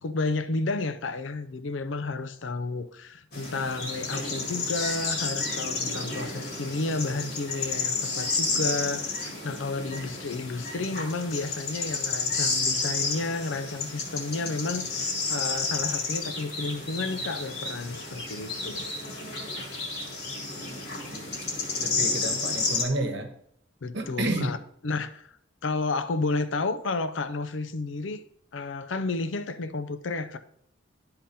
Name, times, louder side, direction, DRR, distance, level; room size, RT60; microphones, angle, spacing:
voice 1, 0.0-18.9 23.8-24.6 24.8-25.3 25.6-28.2 28.5-30.4, left 3 dB, 70° left, 0.5 m, -31 dB
sound 1, 3.3-22.9, left 3 dB, 55° left, 1.8 m, -31 dB
voice 2, 21.8-23.3 23.9-24.6, right 2 dB, 60° right, 1.1 m, -30 dB
11.5 x 3.9 x 4.2 m
head